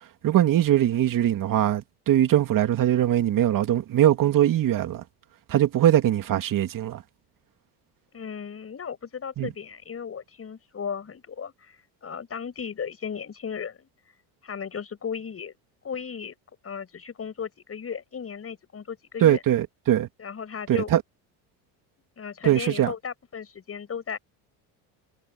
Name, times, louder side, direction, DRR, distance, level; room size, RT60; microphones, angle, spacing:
voice 1, 0.2-5.0 5.5-7.0 9.4-9.5 19.2-20.1 20.7-21.0 22.4-22.9, right 12 dB, 50° right, 2.6 m, -21 dB
voice 2, 8.1-13.9 14.4-15.5 15.8-16.3 16.6-19.4 20.2-20.9 22.2-24.2, left 7 dB, 35° left, 6.7 m, -35 dB
supercardioid pair, 100°, 42 cm